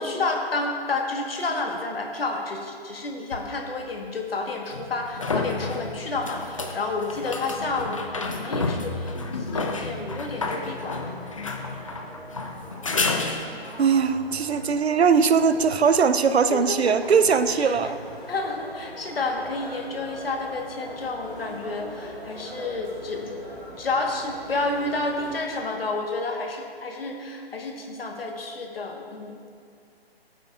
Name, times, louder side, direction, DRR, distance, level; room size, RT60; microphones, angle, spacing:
voice 1, 0.0-11.5 16.5-17.0 17.3-17.8 18.3-23.5 23.8-29.4, left 3 dB, 65° left, 2 dB, 1.4 m, -30 dB
sound 1, 3.3-3.4 4.7-13.8 17.2-17.3, left 3 dB, 35° left, 0.5 m, -30 dB
sound 2, 10.7-25.4, equal, 10° right, 0.9 m, -42 dB
voice 2, 13.8-18.0, right 6 dB, 85° right, 12 dB, 0.6 m, -20 dB
15.0 x 8.7 x 2.4 m, 2.3 s
hypercardioid pair, 160°, 31 cm